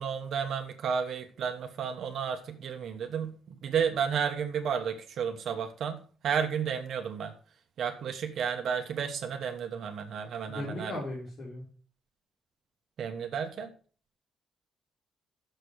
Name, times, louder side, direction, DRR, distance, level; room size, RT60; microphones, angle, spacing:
voice 1, 0.0-7.3 7.8-11.0 13.0-13.7, right 7 dB, 70° right, 5 dB, 1.2 m, -32 dB
voice 2, 10.5-11.6, left 2 dB, 45° left, -6 dB, 3.5 m, -37 dB
6.8 x 6.5 x 6.4 m, 0.42 s
cardioid pair, 115°, 0 cm